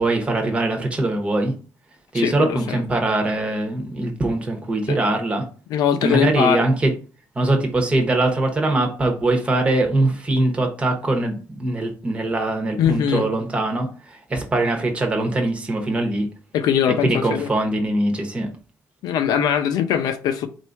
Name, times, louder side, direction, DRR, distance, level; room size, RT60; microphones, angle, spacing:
voice 1, 0.0-1.5 2.1-5.4 6.0-6.9 7.4-16.3 17.0-18.5, right 2 dB, 20° right, 1.0 m, -22 dB
voice 2, 2.1-2.8 4.9-5.0 5.7-6.6 12.8-13.3 16.5-17.5 19.0-20.5, left 9 dB, 90° left, 0.6 m, -21 dB
4.4 x 2.6 x 4.5 m
cardioid pair, 170°, 7 cm